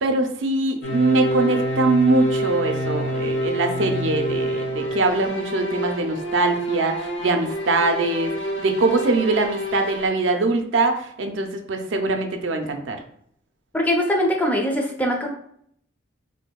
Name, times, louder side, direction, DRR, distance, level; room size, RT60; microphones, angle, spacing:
voice 1, 0.0-8.3 8.6-13.0, right 2 dB, 90° right, 5 dB, 0.5 m, -22 dB
sound 1, 0.8-10.1, equal, 85° left, 0.8 m, -27 dB
voice 2, 13.7-15.3, equal, 10° left, 1 dB, 0.4 m, -22 dB
3.4 x 2.6 x 2.2 m, 0.66 s
head